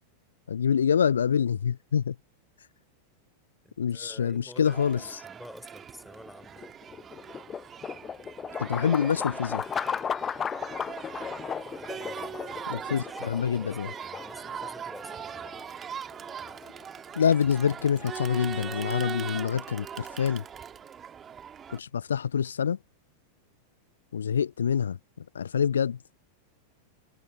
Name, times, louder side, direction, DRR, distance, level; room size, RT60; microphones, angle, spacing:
voice 1, 0.5-2.2 3.8-5.2 8.6-9.7 12.7-13.9 17.1-20.4 21.7-22.8 24.1-26.0, left 7 dB, 70° left, 0.6 m, -26 dB
voice 2, 3.6-6.7 11.6-15.5, left 1 dB, 5° left, 4.2 m, -50 dB
Crowd, 4.7-21.8, right 8 dB, 25° right, 2.0 m, -41 dB
sound 1, 6.2-20.3, left 7 dB, 20° left, 0.9 m, -37 dB
figure-of-eight pair, 90°, 0 cm